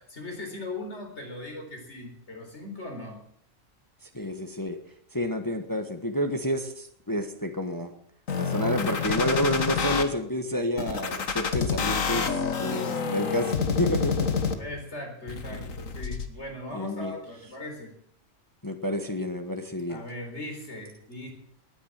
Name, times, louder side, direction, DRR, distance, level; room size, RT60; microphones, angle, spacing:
voice 1, 0.0-3.2 14.5-17.9 19.9-21.3, left 1 dB, 55° left, 3 dB, 4.3 m, -39 dB
voice 2, 4.1-4.8 5.1-7.9 8.3-12.3 12.6-14.4 15.5-15.6 16.7-17.1 18.6-20.0, equal, 15° left, 5 dB, 1.3 m, -29 dB
sound 1, 8.3-10.0 10.8-14.8 15.3-16.3, left 6 dB, 80° left, 1.8 m, -28 dB
19.0 x 9.8 x 7.5 m, 0.66 s
omnidirectional pair, 1.4 m